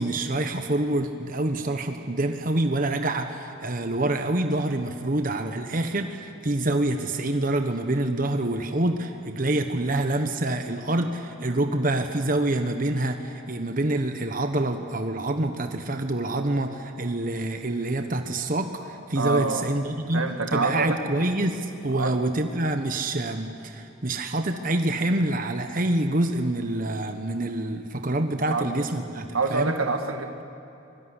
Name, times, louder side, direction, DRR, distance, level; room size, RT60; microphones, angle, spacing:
voice 1, 0.0-29.7, right 1 dB, 40° right, 6 dB, 1.2 m, -26 dB
voice 2, 19.2-19.7 20.1-21.0 21.9-22.2 28.5-28.7 29.3-30.4, right 3 dB, 90° right, 6 dB, 2.0 m, -26 dB
24.5 x 21.5 x 9.8 m, 2.9 s
head